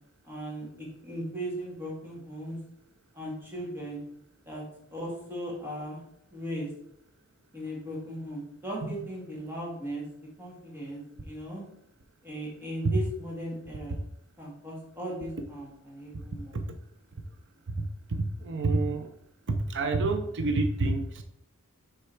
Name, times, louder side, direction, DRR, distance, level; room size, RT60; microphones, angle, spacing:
voice 1, 0.2-2.6 3.1-4.0 4.5-4.6 4.9-6.0 6.3-6.7 7.5-10.0 10.4-11.6 12.2-14.0 14.4-16.6, equal, 10° right, -4 dB, 2.0 m, -37 dB
voice 2, 18.1-19.1 19.5-21.2, right 3 dB, 55° right, 6 dB, 0.7 m, -28 dB
6.5 x 3.7 x 4.5 m, 0.72 s
head